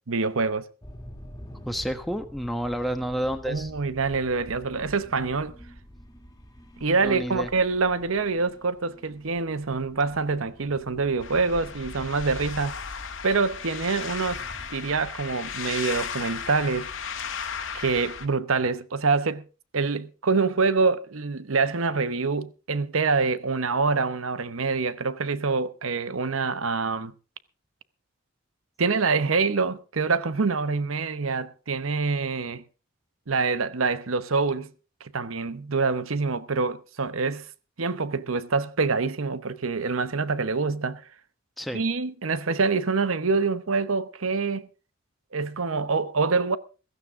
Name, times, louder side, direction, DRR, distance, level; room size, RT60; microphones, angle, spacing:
voice 1, 0.1-0.6 3.5-5.6 6.8-12.8 13.2-14.4 14.7-16.9 17.7-19.4 19.7-27.1 28.8-32.6 33.3-34.7 35.0-37.4 37.8-41.0 41.7-44.7 45.3-46.6, right 4 dB, 90° right, 0.9 m, -26 dB
sound 1, 0.8-14.7, equal, 20° left, 2.1 m, -47 dB
voice 2, 1.6-3.7 7.0-7.5 41.6-41.8, equal, ahead, 1.2 m, -30 dB
sound 2, 11.2-18.3, left 6 dB, 80° left, 1.9 m, -35 dB
16.0 x 15.0 x 3.6 m
head